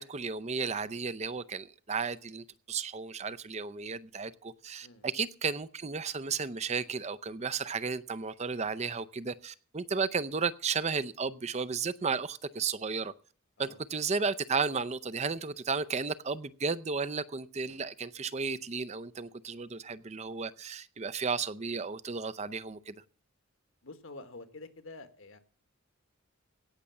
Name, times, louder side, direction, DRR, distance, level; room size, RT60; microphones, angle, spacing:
voice 1, 0.0-13.1 13.6-22.9, right 5 dB, 30° right, 0.6 m, -34 dB
voice 2, 23.8-25.4, left 3 dB, 65° left, 1.6 m, -48 dB
17.0 x 6.7 x 7.1 m
head